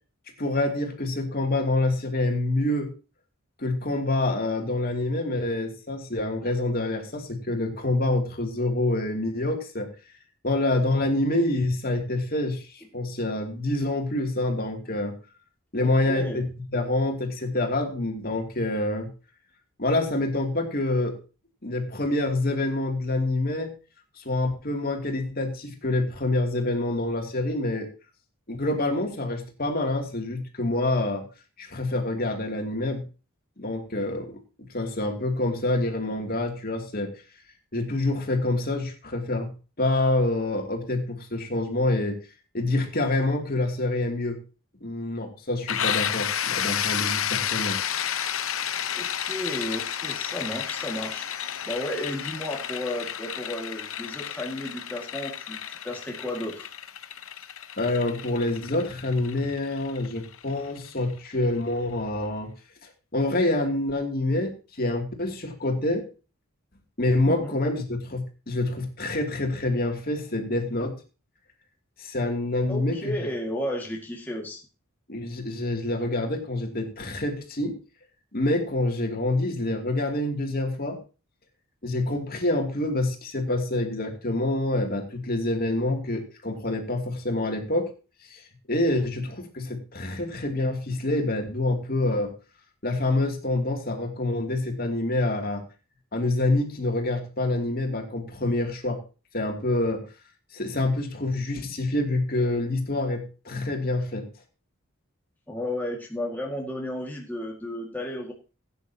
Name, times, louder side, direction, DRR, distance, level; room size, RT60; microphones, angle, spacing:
voice 1, 0.4-2.9 3.6-9.9 10.4-15.1 15.7-19.1 19.8-21.2 21.6-23.7 24.2-27.9 28.5-31.3 31.6-33.0 33.6-34.4 34.7-37.1 37.7-39.5 39.8-42.2 42.5-44.4 44.8-47.8 57.8-62.5 62.8-66.1 67.0-71.0 72.0-73.1 75.1-77.8 78.3-81.0 81.8-87.9 88.2-88.4 88.7-92.3 92.8-95.6 96.1-99.0 99.3-100.0 100.5-104.3, left 2 dB, 40° left, 3 dB, 2.7 m, -27 dB
voice 2, 15.8-16.4 49.0-51.3 51.6-56.7 67.3-67.6 72.7-74.6 105.5-108.3, left 1 dB, 10° left, -2 dB, 2.0 m, -33 dB
sound 1, 45.7-61.3, left 9 dB, 65° left, 0.9 m, -31 dB
17.0 x 9.4 x 2.9 m, 0.34 s
head